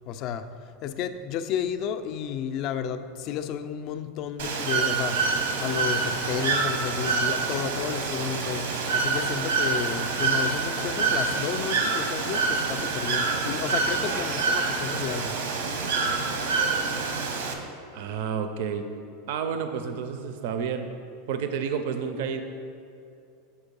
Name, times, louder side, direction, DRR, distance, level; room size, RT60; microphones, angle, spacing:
voice 1, 0.0-5.2 5.6-8.7 8.9-15.4, left 8 dB, 35° left, 9 dB, 0.3 m, -32 dB
Bird / Water, 4.4-17.5, right 4 dB, 85° right, 0.9 m, -26 dB
voice 2, 17.9-18.9 19.3-20.9 21.3-22.4, right 7 dB, 60° right, 7 dB, 0.4 m, -30 dB
7.1 x 4.5 x 5.2 m, 2.6 s
supercardioid pair, 175°, 0 cm